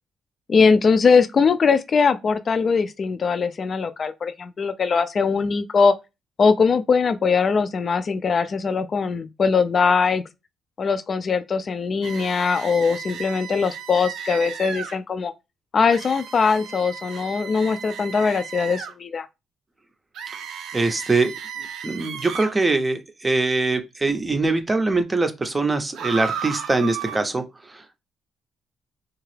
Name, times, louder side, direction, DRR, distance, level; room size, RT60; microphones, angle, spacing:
voice 1, 0.5-5.9 6.4-10.2 10.8-15.3 15.7-19.3, left 5 dB, 45° left, 0.4 m, -21 dB
sound 1, 12.0-15.0 15.9-18.9 20.1-22.5 25.9-27.2, right 8 dB, 80° right, 0.5 m, -34 dB
voice 2, 20.7-21.3 21.6-28.0, right 3 dB, 20° right, 0.5 m, -23 dB
2.8 x 2.3 x 3.2 m
cardioid pair, 90°, 0 cm